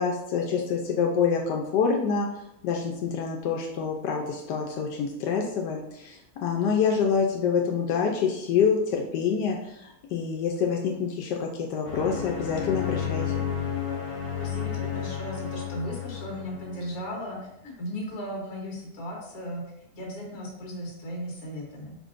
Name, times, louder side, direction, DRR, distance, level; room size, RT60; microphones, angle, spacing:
voice 1, 0.0-2.3 2.6-13.5, left 6 dB, 90° left, 1 dB, 1.2 m, -26 dB
sound 1, 11.8-17.0, left 8 dB, 40° left, 1.1 m, -32 dB
voice 2, 14.4-19.6 19.9-22.0, equal, 60° left, -1 dB, 1.6 m, -36 dB
4.9 x 4.3 x 2.5 m, 0.85 s
omnidirectional pair, 1.8 m